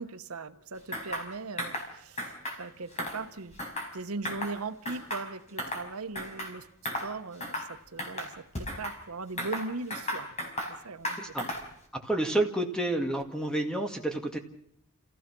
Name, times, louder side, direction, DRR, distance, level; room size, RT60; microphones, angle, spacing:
voice 1, 0.0-3.6 3.9-10.3 10.7-11.3, right 3 dB, 85° right, 10 dB, 1.0 m, -39 dB
sound 1, 0.9-1.3 1.6-1.9 2.2-2.6 2.9-3.9 4.2-4.6 4.9-5.9 6.1-6.5 6.8-7.1 7.4-7.7 8.0-9.0 9.4-10.7 11.0-11.7, equal, 35° left, 4.9 m, -35 dB
voice 2, 11.9-14.4, right 1 dB, 5° left, 4 dB, 2.1 m, -29 dB
28.0 x 16.0 x 6.1 m, 0.73 s
head